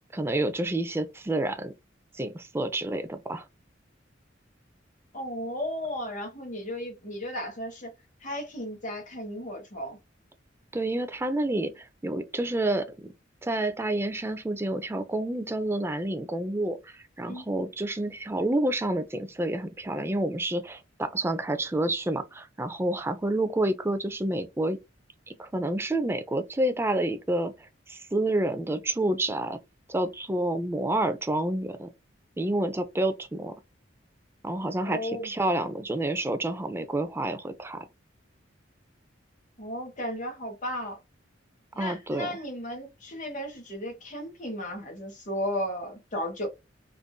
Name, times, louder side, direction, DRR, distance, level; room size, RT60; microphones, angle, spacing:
voice 1, 0.1-1.7 2.1-3.4 10.7-13.1 13.4-24.8 25.3-27.5 27.9-29.6 29.9-31.9 32.4-33.5 34.4-37.8 41.8-42.4, right 1 dB, 15° right, 0.4 m, -29 dB
voice 2, 5.1-7.9 8.2-10.0 17.3-17.4 34.9-35.3 39.6-41.0 41.7-46.5, equal, 40° left, 1.3 m, -34 dB
3.6 x 2.5 x 2.2 m
head